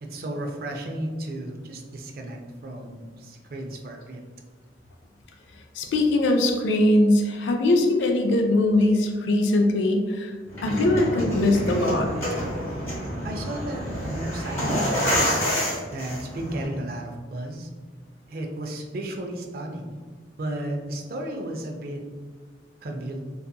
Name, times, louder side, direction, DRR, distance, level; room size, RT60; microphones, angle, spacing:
voice 1, 0.0-4.2 13.2-15.4 15.9-17.7 18.3-19.9 20.4-22.0 22.8-23.2, right 1 dB, 55° right, 2 dB, 0.4 m, -34 dB
voice 2, 5.7-10.3 10.6-12.1, left 1 dB, 80° left, 4 dB, 0.4 m, -21 dB
sound 1, 10.5-16.6, equal, 15° left, 0.9 m, -27 dB
2.7 x 2.4 x 2.2 m, 1.5 s
head